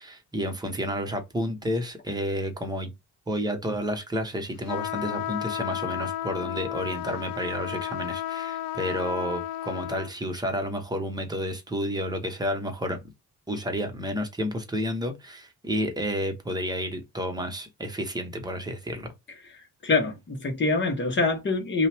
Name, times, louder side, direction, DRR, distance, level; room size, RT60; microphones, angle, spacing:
voice 1, 0.0-2.9 3.3-13.0 13.5-19.1, equal, 10° right, 1.0 m, -31 dB
sound 1, 4.7-10.1, left 13 dB, 75° left, 0.5 m, -33 dB
voice 2, 19.8-21.9, left 3 dB, 30° left, 1.3 m, -25 dB
5.4 x 2.4 x 3.5 m
wide cardioid pair, 175°, 35 cm